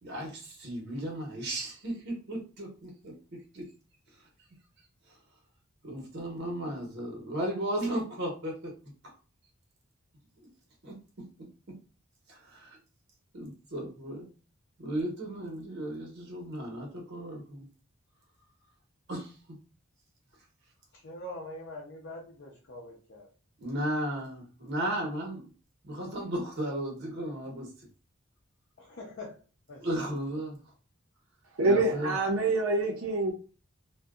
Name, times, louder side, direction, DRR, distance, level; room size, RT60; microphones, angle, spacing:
voice 1, 0.0-3.7 5.1-5.2 5.8-9.1 10.4-10.5 10.8-10.9 12.3-12.8 13.3-14.3 14.8-17.7 19.1-19.4 23.6-25.4 25.8-27.7 29.8-30.6 31.6-32.2, right 1 dB, 55° right, 0.8 m, -35 dB
voice 2, 20.9-23.3 28.8-29.4 29.7-29.9, left 1 dB, 55° left, 0.6 m, -43 dB
voice 3, 31.6-33.3, right 2 dB, 85° right, 0.6 m, -26 dB
2.7 x 2.2 x 2.3 m
head